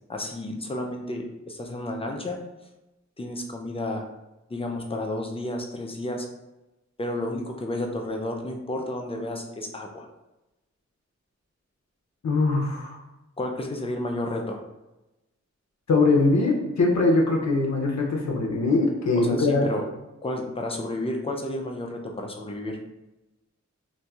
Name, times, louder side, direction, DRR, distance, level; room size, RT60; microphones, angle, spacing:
voice 1, 0.1-2.4 3.2-4.1 4.5-6.3 7.0-10.1 13.4-14.6 19.2-19.9 20.2-22.8, left 1 dB, 20° left, 2 dB, 0.4 m, -31 dB
voice 2, 12.2-13.0 15.9-19.7, left 3 dB, 65° left, -1 dB, 0.6 m, -22 dB
2.9 x 2.5 x 2.3 m, 0.99 s
wide cardioid pair, 80°, 29 cm